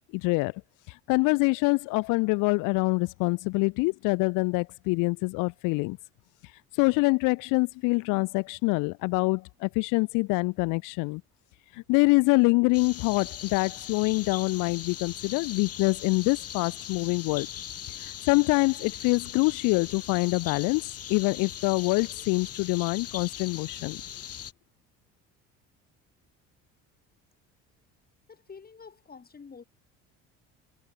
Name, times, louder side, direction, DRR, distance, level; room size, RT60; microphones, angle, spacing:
voice 1, 0.1-0.5 0.9-6.0 6.8-11.2 11.7-17.5 18.0-20.8 21.1-24.0, left 26 dB, 70° left, 0.5 m, -25 dB
sound 1, 12.7-24.5, left 9 dB, 45° left, 3.5 m, -40 dB
voice 2, 28.3-29.6, left 5 dB, 30° left, 4.1 m, -48 dB
supercardioid pair, 90°, 32 cm